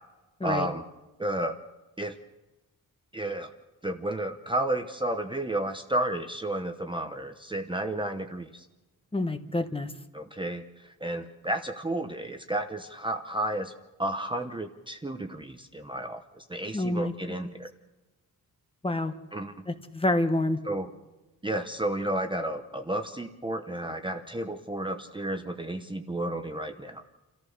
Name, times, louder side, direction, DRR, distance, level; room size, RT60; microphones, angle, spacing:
voice 1, 0.4-0.8 1.2-1.6 2.0-2.2 3.1-3.5 3.8-8.6 10.1-13.7 14.0-17.7 19.3-19.5 20.6-20.9 21.4-27.0, right 1 dB, 15° right, 6 dB, 0.9 m, -32 dB
voice 2, 9.1-9.9 16.7-17.1 17.4-17.5 18.8-19.1 19.7-20.6, left 1 dB, 15° left, 8 dB, 1.1 m, -27 dB
29.0 x 14.0 x 6.5 m, 1.1 s
wide cardioid pair, 155°, 35 cm